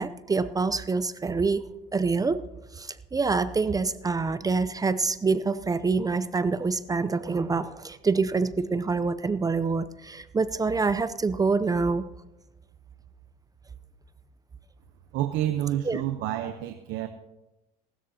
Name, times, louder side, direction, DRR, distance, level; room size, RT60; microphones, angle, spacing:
voice 1, 0.0-1.7 1.9-2.4 2.7-12.1 15.8-16.0, right 4 dB, 20° right, 13 dB, 0.5 m, -26 dB
voice 2, 15.1-17.1, right 12 dB, 70° right, 8 dB, 0.9 m, -29 dB
18.5 x 13.0 x 2.8 m, 0.99 s
supercardioid pair, 105°, 20 cm